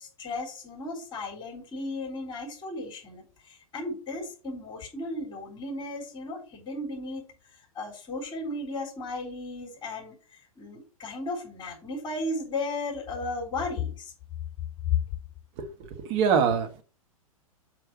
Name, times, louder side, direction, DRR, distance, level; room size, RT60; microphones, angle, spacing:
voice 1, 0.0-7.2 7.8-14.1, left 2 dB, 25° left, 3.8 m, -35 dB
voice 2, 15.6-16.8, right 6 dB, 40° right, 1.4 m, -25 dB
5.8 x 5.1 x 5.9 m
figure-of-eight pair, 100°, 18 cm